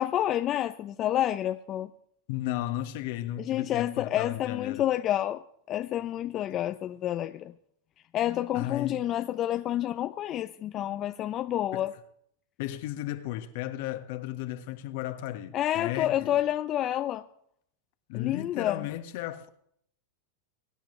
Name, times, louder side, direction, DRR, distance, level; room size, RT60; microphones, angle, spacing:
voice 1, 0.0-1.9 3.4-5.4 5.7-7.5 8.1-11.9 15.5-17.3 18.1-18.9, left 12 dB, 35° left, 0.6 m, -29 dB
voice 2, 2.3-4.8 8.5-9.0 11.7-11.9 12.6-16.4 18.1-19.5, left 13 dB, 60° left, 1.5 m, -34 dB
23.0 x 10.0 x 3.3 m
hypercardioid pair, 120°, 0 cm